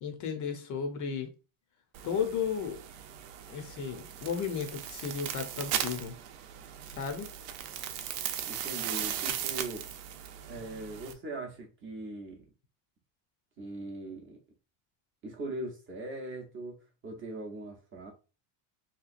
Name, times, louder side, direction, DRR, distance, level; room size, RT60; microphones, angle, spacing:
voice 1, 0.0-1.3 2.0-2.8 3.5-6.1 6.9-7.3, left 6 dB, 40° left, 0.6 m, -34 dB
sound 1, 1.9-11.1, right 10 dB, 85° right, 0.7 m, -38 dB
voice 2, 8.5-9.9 10.5-12.4 13.6-14.4 15.2-16.8 17.0-18.1, right 2 dB, 25° right, 0.6 m, -40 dB
3.3 x 2.9 x 2.5 m
cardioid pair, 150°, 49 cm